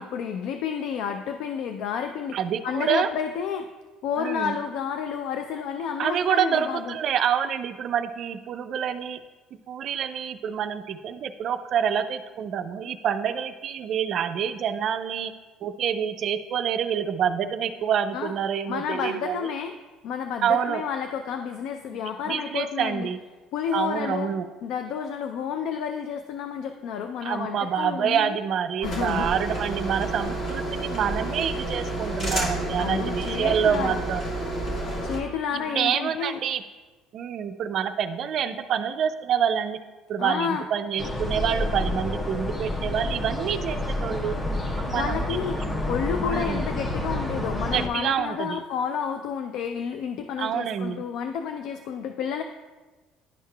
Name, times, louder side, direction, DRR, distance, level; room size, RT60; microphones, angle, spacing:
voice 1, 0.0-2.4 2.6-3.7 4.0-7.0 18.1-18.3 18.7-19.7 20.0-23.1 23.5-24.3 24.6-28.4 28.8-29.3 32.8-34.0 35.0-36.4 40.2-40.6 44.9-45.6 45.9-52.4, left 7 dB, 70° left, 6 dB, 0.3 m, -30 dB
voice 2, 2.3-3.1 4.2-4.6 6.0-9.2 9.7-15.3 15.6-19.5 20.4-20.8 22.3-23.2 23.7-24.4 27.2-34.2 35.5-36.6 37.1-39.8 40.1-44.4 44.6-45.8 46.3-46.6 47.7-48.6 50.4-51.0, right 8 dB, 55° right, 9 dB, 0.3 m, -27 dB
Printer Scanner Copier Printing Office Motor Servo Laserjet, 28.8-35.2, right 1 dB, 50° left, 1.7 m, -30 dB
sound 1, 41.0-47.9, left 1 dB, 25° left, 0.8 m, -29 dB
11.0 x 4.7 x 2.2 m, 1.3 s
supercardioid pair, 95°, 0 cm